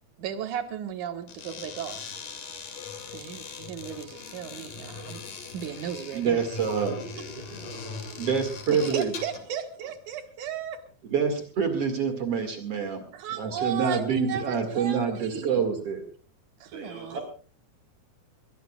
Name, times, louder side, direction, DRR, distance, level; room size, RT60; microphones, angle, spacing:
voice 1, 0.2-2.0 3.1-5.2 5.5-6.4 8.7-10.8 13.1-15.6 16.6-17.2, right 8 dB, 60° right, 6 dB, 2.7 m, -35 dB
sound 1, 1.2-9.5, left 5 dB, 60° left, 3.8 m, -41 dB
voice 2, 6.1-7.0 8.2-9.1 11.1-13.0 13.4-16.0, right 6 dB, 45° right, 6 dB, 2.6 m, -26 dB
voice 3, 6.9-8.4 16.7-17.2, right 2 dB, 80° right, -2 dB, 6.3 m, -43 dB
21.5 x 21.5 x 2.4 m, 0.39 s
omnidirectional pair, 4.4 m